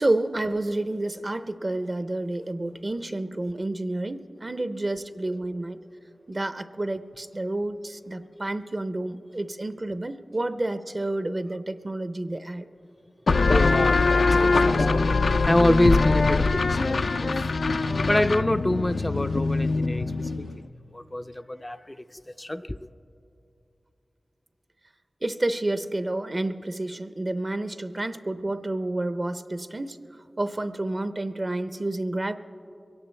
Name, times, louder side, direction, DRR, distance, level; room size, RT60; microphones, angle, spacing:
voice 1, 0.0-5.8 6.3-12.7 25.2-30.0 30.4-32.3, right 2 dB, 40° right, 0.6 m, -29 dB
sound 1, 13.3-20.6, left 3 dB, 90° left, 0.4 m, -22 dB
voice 2, 13.5-17.4 18.1-20.5 20.9-22.8, left 1 dB, 20° left, 0.4 m, -26 dB
22.5 x 17.0 x 3.3 m
wide cardioid pair, 50°, 0 cm